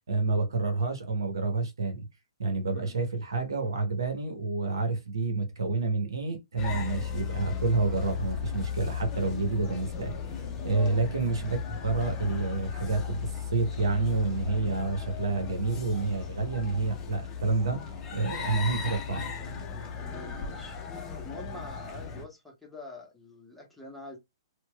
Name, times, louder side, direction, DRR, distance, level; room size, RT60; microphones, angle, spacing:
voice 1, 0.1-2.1 2.4-17.9 18.1-19.2, right 3 dB, 65° right, 1.0 m, -29 dB
voice 2, 2.6-3.0 10.7-11.0 20.0-20.8 21.2-24.2, left 2 dB, ahead, 1.1 m, -45 dB
sound 1, 6.6-22.2, left 6 dB, 20° left, 0.7 m, -36 dB
4.4 x 2.3 x 2.2 m
figure-of-eight pair, 120°, 2 cm